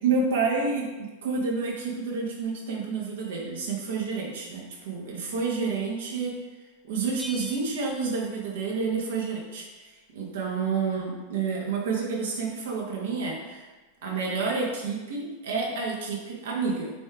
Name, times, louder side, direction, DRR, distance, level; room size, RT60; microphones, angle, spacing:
voice 1, 0.0-6.4 6.8-13.7 14.0-16.9, right 4 dB, 60° right, -2 dB, 1.5 m, -29 dB
Bell, 7.2-9.0, left 1 dB, 5° left, 0.5 m, -45 dB
6.2 x 4.8 x 3.5 m, 1.2 s
figure-of-eight pair, 90°, 0 cm